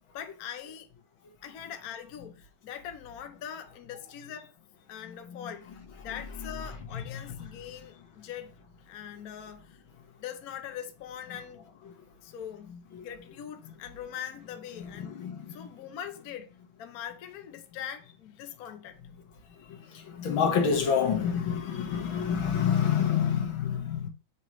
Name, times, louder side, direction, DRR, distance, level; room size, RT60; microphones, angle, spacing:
voice 1, 0.1-0.9 1.4-4.5 4.9-5.7 6.0-8.5 8.9-9.8 10.2-11.7 12.2-15.2 15.5-16.5 16.8-19.0, left 9 dB, 60° left, 1.1 m, -42 dB
voice 2, 5.1-5.5 6.9-7.2 12.9-13.0 13.6-13.7 14.8-15.7 19.7-24.1, left 7 dB, 75° left, 2.1 m, -28 dB
6.9 x 3.0 x 4.7 m
omnidirectional pair, 2.2 m